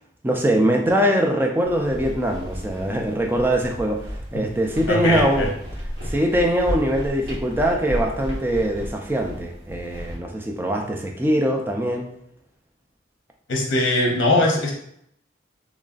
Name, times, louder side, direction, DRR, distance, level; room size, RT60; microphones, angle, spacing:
voice 1, 0.2-4.0 4.3-5.5 6.0-12.1, equal, 10° right, 2 dB, 0.4 m, -22 dB
sound 1, 1.6-10.2, equal, 75° right, 1.4 m, -33 dB
voice 2, 4.9-5.5 13.5-14.7, left 2 dB, 80° left, 1 dB, 0.7 m, -21 dB
3.8 x 3.1 x 2.4 m, 0.73 s
head